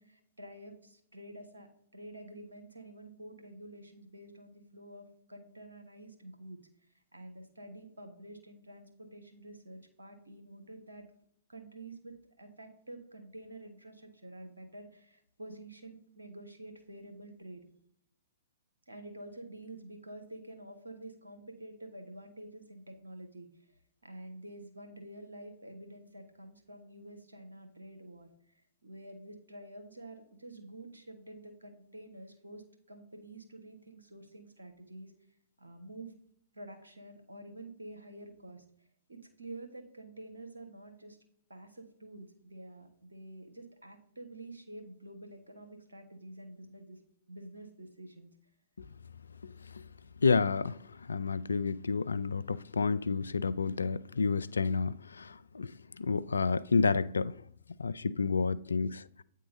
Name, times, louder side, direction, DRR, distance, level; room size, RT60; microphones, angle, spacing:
voice 1, 0.0-6.7 7.1-11.1 11.5-17.7 18.9-28.5 28.8-35.1 35.6-36.1 36.5-38.6 39.1-41.2 41.5-47.0 47.3-48.3, right 1 dB, 85° right, 1.4 m, -49 dB
voice 2, 50.2-50.8 51.1-55.7 56.0-57.3 57.8-59.0, left 4 dB, 80° left, 0.4 m, -30 dB
8.7 x 3.7 x 5.2 m
figure-of-eight pair, 115°, 0 cm